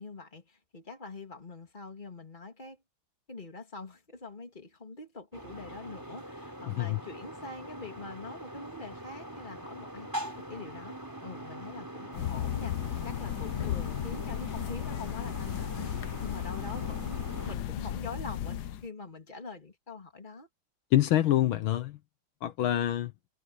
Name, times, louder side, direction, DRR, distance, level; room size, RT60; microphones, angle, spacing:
voice 1, 0.0-2.8 3.3-11.0 11.2-20.5, left 3 dB, 20° left, 3.1 m, -44 dB
sound 1, 5.3-17.5, right 1 dB, 10° right, 4.1 m, -43 dB
voice 2, 6.7-7.0 20.9-22.0 22.4-23.1, left 13 dB, 80° left, 1.8 m, -26 dB
sound 2, 12.1-18.9, left 12 dB, 60° left, 1.2 m, -35 dB
omnidirectional pair, 2.2 m